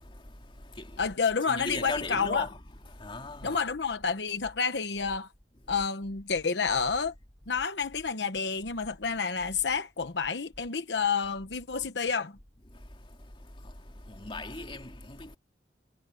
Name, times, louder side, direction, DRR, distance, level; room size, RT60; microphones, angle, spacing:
voice 1, 0.0-1.1 1.5-3.6 5.7-5.8 12.7-15.4, left 2 dB, 30° left, 2.5 m, -39 dB
voice 2, 1.0-2.5 3.4-5.3 5.7-7.1 7.5-12.4, left 5 dB, 75° left, 1.1 m, -29 dB
head